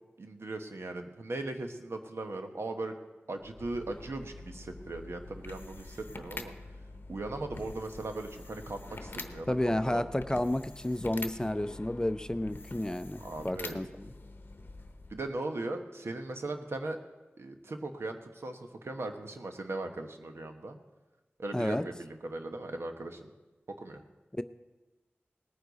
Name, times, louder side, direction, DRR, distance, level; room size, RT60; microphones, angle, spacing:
voice 1, 0.2-2.9 3.3-6.5 7.1-10.0 13.2-13.8 15.1-17.0 17.4-20.8 21.4-23.3 23.8-24.0, right 2 dB, 75° right, 5 dB, 1.1 m, -38 dB
sound 1, 3.4-15.4, left 2 dB, 50° left, 0.9 m, -46 dB
voice 2, 9.5-14.1 21.5-21.8 24.3-24.4, left 1 dB, 15° left, 12 dB, 0.5 m, -31 dB
19.0 x 9.6 x 4.1 m, 1.1 s
cardioid pair, 45°, 4 cm